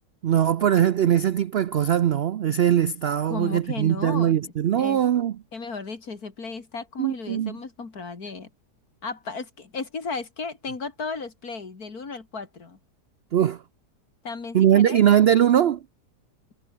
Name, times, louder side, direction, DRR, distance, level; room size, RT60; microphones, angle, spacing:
voice 1, 0.2-5.4 7.0-7.6 13.3-13.6 14.5-15.8, right 10 dB, 90° right, 0.5 m, -21 dB
voice 2, 3.3-4.3 4.8-5.0 5.5-8.5 9.0-12.8 14.2-15.0, left 4 dB, 65° left, 3.3 m, -34 dB
omnidirectional pair, 1.7 m